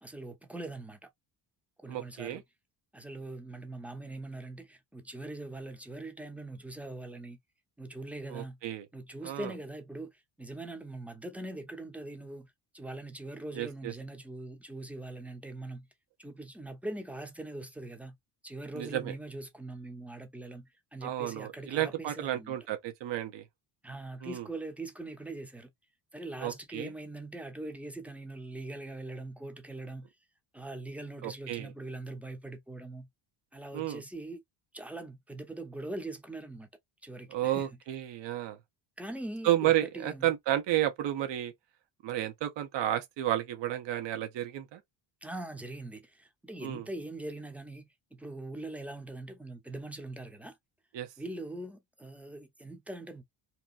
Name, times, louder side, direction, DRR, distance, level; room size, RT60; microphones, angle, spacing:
voice 1, 0.0-1.1 1.8-2.4 2.9-7.4 7.8-8.6 8.9-15.9 16.2-18.2 18.4-22.6 23.8-25.7 26.1-30.1 30.5-33.1 33.5-34.4 34.7-36.7 37.0-37.7 39.0-40.3 45.2-50.6 51.2-53.2, right 2 dB, 5° right, 0.6 m, -42 dB
voice 2, 1.9-2.4 8.3-8.9 9.2-9.5 13.5-13.9 18.7-19.1 21.0-23.4 24.2-24.4 26.4-26.9 31.2-31.7 33.7-34.0 37.3-38.6 39.4-41.5 42.0-44.8 46.6-46.8 50.9-51.1, right 13 dB, 70° right, 0.9 m, -32 dB
2.9 x 2.3 x 2.4 m
cardioid pair, 110°, 45 cm